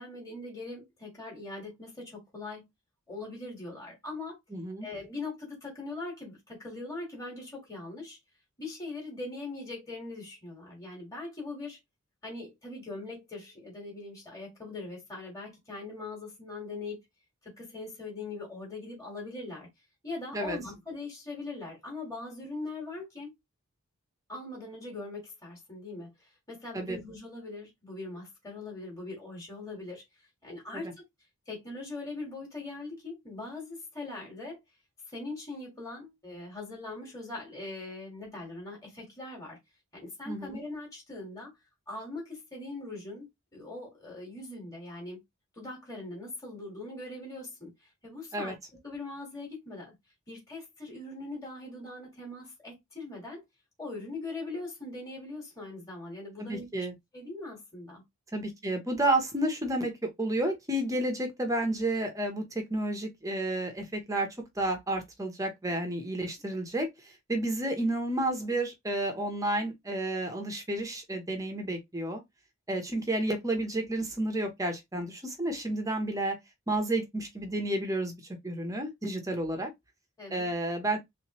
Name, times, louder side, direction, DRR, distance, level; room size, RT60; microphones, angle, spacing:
voice 1, 0.0-2.7 3.1-4.4 4.8-8.2 8.6-11.8 12.2-17.0 17.4-19.7 20.0-23.3 24.3-30.0 30.4-30.9 31.4-34.6 35.1-39.6 39.9-41.5 41.9-45.2 45.5-49.9 50.3-53.4 53.8-56.9 57.1-58.0 80.2-80.5, left 2 dB, 15° left, 1.7 m, -41 dB
voice 2, 4.5-4.9 20.3-20.6 26.7-27.0 40.3-40.6 48.3-48.5 56.4-56.9 58.3-64.3 64.5-72.2 72.7-76.4 76.7-79.7 80.3-81.0, right 1 dB, 15° right, 0.8 m, -31 dB
3.4 x 3.0 x 3.0 m
head